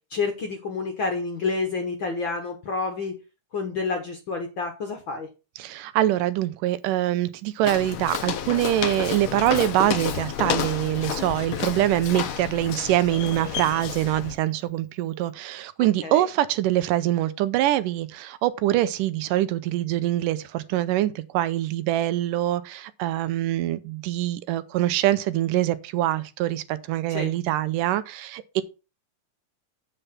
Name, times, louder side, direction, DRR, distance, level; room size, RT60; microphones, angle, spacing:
voice 1, 0.1-3.1 3.5-5.3 16.0-16.3 27.1-27.3, left 4 dB, 60° left, 1.3 m, -29 dB
voice 2, 5.6-28.6, right 14 dB, 85° right, 2.3 m, -24 dB
Walk footsteps, 7.6-14.3, left 9 dB, 90° left, 1.1 m, -30 dB
8.3 x 6.8 x 5.9 m
omnidirectional pair, 3.8 m